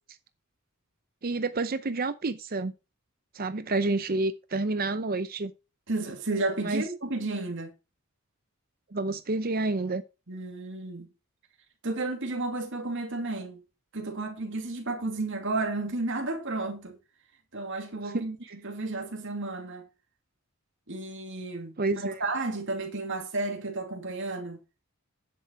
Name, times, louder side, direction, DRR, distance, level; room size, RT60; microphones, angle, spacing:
voice 1, 1.2-2.7 3.3-5.5 6.6-6.9 8.9-10.0 18.1-18.2 21.8-22.2, right 3 dB, 45° right, 0.7 m, -29 dB
voice 2, 5.9-7.7 10.3-11.1 11.8-13.6 13.9-17.0 17.5-19.9 20.9-24.6, right 2 dB, 60° right, 2.7 m, -32 dB
10.5 x 7.7 x 4.7 m
head